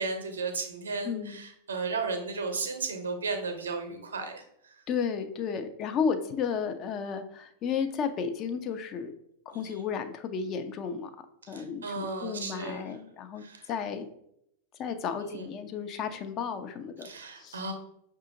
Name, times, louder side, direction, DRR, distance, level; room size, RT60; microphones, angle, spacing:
voice 1, 0.0-4.8 9.5-9.9 11.4-12.8 13.4-13.7 15.2-15.5 17.0-17.7, right 4 dB, 75° right, 6 dB, 0.7 m, -35 dB
voice 2, 1.0-1.4 4.9-9.1 9.5-11.1 11.5-14.1 14.8-17.1 17.4-17.6, left 6 dB, 35° left, 7 dB, 0.4 m, -33 dB
5.5 x 2.4 x 2.7 m, 0.74 s
figure-of-eight pair, 95°, 0 cm